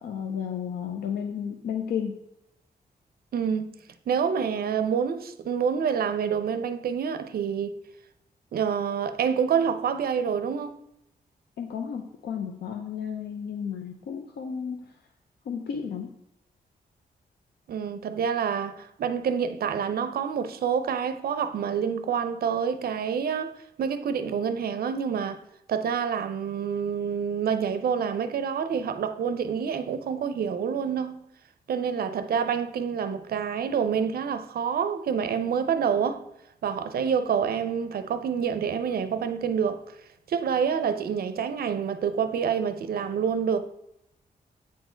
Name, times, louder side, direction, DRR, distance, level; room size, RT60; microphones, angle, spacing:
voice 1, 0.0-2.1 11.6-15.0 15.4-16.1, left 7 dB, 90° left, 0.7 m, -33 dB
voice 2, 3.3-3.7 4.1-7.8 8.5-10.7 17.7-25.4 25.7-31.1 31.7-36.2 36.6-40.0 40.3-43.6, right 7 dB, 70° right, 0.6 m, -27 dB
8.4 x 4.5 x 4.4 m
wide cardioid pair, 145°, 16 cm